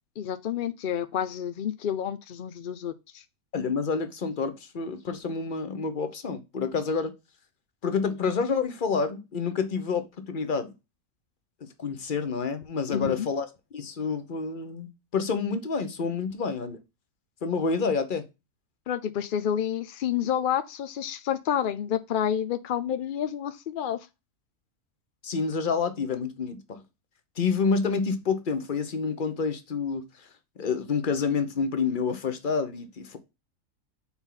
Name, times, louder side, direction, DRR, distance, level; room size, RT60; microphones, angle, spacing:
voice 1, 0.2-3.2 12.9-13.3 18.9-24.0, left 9 dB, 80° left, 0.4 m, -29 dB
voice 2, 3.5-7.1 7.8-10.7 11.8-13.5 13.7-16.8 17.4-18.2 25.2-26.8 27.4-30.3 30.6-33.2, left 5 dB, 40° left, 0.9 m, -28 dB
5.9 x 4.4 x 3.8 m
omnidirectional pair, 1.5 m